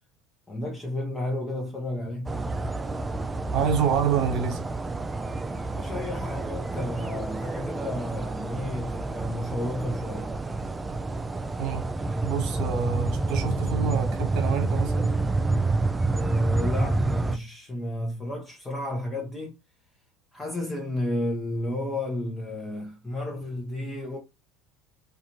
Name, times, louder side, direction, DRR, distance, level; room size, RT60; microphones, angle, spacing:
voice 1, 0.5-2.4 5.7-10.3 16.0-19.5 20.3-24.2, left 1 dB, 15° left, 0.8 m, -32 dB
sound 1, 2.3-17.4, right 3 dB, 15° right, 0.3 m, -28 dB
voice 2, 3.5-4.6 11.6-11.8 12.2-15.1, right 7 dB, 55° right, 1.1 m, -27 dB
2.5 x 2.4 x 2.9 m
hypercardioid pair, 85°, 0 cm